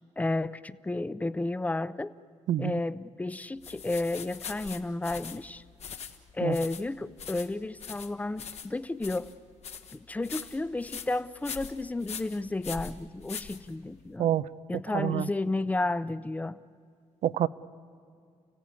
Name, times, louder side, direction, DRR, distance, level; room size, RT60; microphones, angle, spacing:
voice 1, 0.2-2.1 2.6-5.6 6.3-9.3 9.9-14.3 14.7-16.6, left 2 dB, 10° left, 16 dB, 0.6 m, -32 dB
sound 1, 3.6-14.1, left 7 dB, 60° left, 1.4 m, -42 dB
voice 2, 14.9-15.3 17.2-17.5, right 11 dB, 75° right, 15 dB, 0.6 m, -27 dB
30.0 x 15.5 x 9.6 m, 2.2 s
cardioid pair, 105°, 12 cm